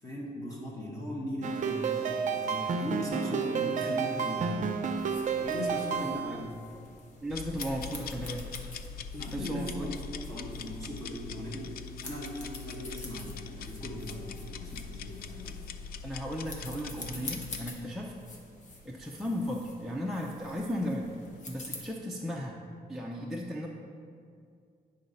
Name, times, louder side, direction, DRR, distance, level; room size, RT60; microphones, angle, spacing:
voice 1, 0.0-4.7 5.4-6.5 9.1-15.6, equal, 20° left, -4 dB, 1.1 m, -39 dB
sound 1, 1.4-6.4, right 6 dB, 50° right, 0.5 m, -31 dB
sound 2, 4.9-21.9, left 2 dB, 50° left, 1.2 m, -48 dB
voice 2, 6.0-6.4 7.2-8.5 9.3-9.9 16.0-18.4 18.8-21.1 21.5-22.6 22.9-23.7, equal, ahead, -2 dB, 0.5 m, -35 dB
sound 3, 7.3-17.7, left 6 dB, 70° left, 0.4 m, -42 dB
9.6 x 3.9 x 5.4 m, 2.3 s
wide cardioid pair, 145°, 16 cm